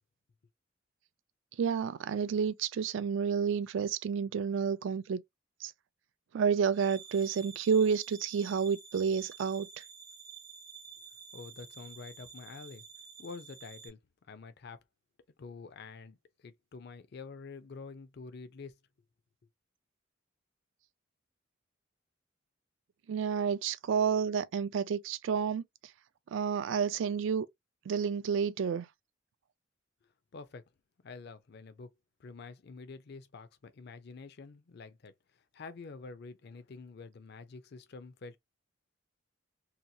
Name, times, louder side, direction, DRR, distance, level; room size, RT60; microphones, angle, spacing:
voice 1, 1.6-5.2 5.6-5.7 6.3-9.7 23.1-25.6 26.3-27.5 27.9-28.9, right 6 dB, 65° right, 0.3 m, -30 dB
sound 1, 6.7-13.9, right 6 dB, 50° right, 0.7 m, -51 dB
voice 2, 11.3-12.8 13.2-14.0 14.3-14.8 15.4-18.8 30.3-30.7 31.0-31.9 32.2-38.4, left 4 dB, 55° left, 0.5 m, -47 dB
2.8 x 2.2 x 2.6 m
head